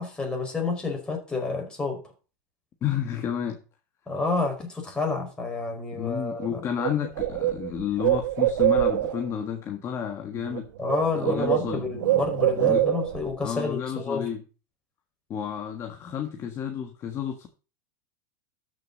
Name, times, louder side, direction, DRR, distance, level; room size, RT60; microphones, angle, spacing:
voice 1, 0.0-2.0 4.1-6.6 10.8-14.3, left 3 dB, 10° left, 1 dB, 5.0 m, -29 dB
voice 2, 2.8-3.6 6.0-10.7 11.2-11.8 12.6-12.8 13.4-14.4 15.3-17.5, left 8 dB, 30° left, 5 dB, 1.5 m, -31 dB
Bird, 6.4-6.5 6.8-9.3 10.4-10.6 10.9-13.3, right 13 dB, 85° right, 1.2 m, -24 dB
13.0 x 6.6 x 4.1 m, 0.34 s
supercardioid pair, 155°, 10 cm